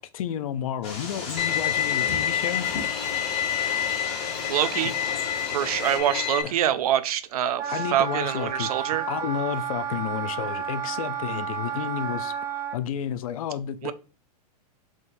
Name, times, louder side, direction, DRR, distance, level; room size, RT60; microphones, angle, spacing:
voice 1, 0.1-2.7 6.4-6.5 7.7-12.3 12.7-13.9, left 9 dB, 60° left, 0.4 m, -31 dB
sound 1, 0.8-6.0, left 3 dB, 30° left, 1.1 m, -36 dB
Bowed string instrument, 1.4-6.4, left 9 dB, 90° left, 0.7 m, -28 dB
voice 2, 4.5-4.9 5.5-9.0 13.8-13.9, right 11 dB, 65° right, 0.4 m, -25 dB
Wind instrument woodwind instrument, 7.5-12.8, right 8 dB, 15° right, 0.7 m, -31 dB
4.0 x 3.6 x 2.5 m
supercardioid pair, 160°, 20 cm